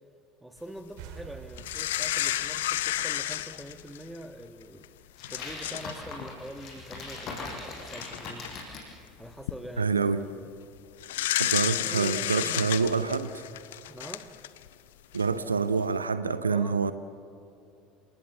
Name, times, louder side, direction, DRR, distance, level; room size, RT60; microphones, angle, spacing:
voice 1, 0.4-4.9 5.3-8.5 9.2-10.5 11.6-12.7 13.9-14.3 16.5-16.9, right 1 dB, 5° right, 9 dB, 1.6 m, -44 dB
sound 1, 1.0-4.5, right 8 dB, 55° right, 2.0 m, -49 dB
sound 2, 1.6-4.2 4.8-4.9 5.2-5.9 6.2-6.4 7.5-7.6 8.0-8.5 9.2-9.5 11.0-14.7 15.1-15.2, left 14 dB, 65° left, 0.7 m, -31 dB
sound 3, 5.2-8.9, left 3 dB, 45° left, 6.6 m, -40 dB
voice 2, 9.8-10.2 11.4-13.4 15.1-16.9, right 5 dB, 80° right, 13 dB, 0.7 m, -26 dB
28.0 x 19.0 x 7.1 m, 2.7 s
figure-of-eight pair, 70°, 0 cm